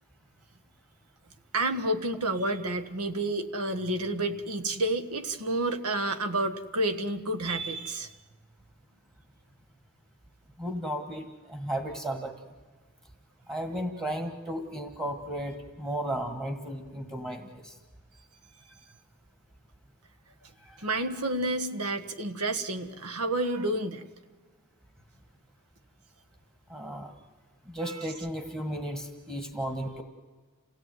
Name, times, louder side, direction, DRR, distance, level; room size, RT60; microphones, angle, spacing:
voice 1, 1.5-8.1 20.8-24.0 27.8-28.0, right 2 dB, 85° right, 7 dB, 1.6 m, -30 dB
voice 2, 10.6-12.3 13.5-17.7 20.6-20.8 26.7-27.1 27.7-30.0, right 1 dB, 15° right, 5 dB, 1.7 m, -34 dB
28.5 x 17.0 x 9.4 m, 1.4 s
head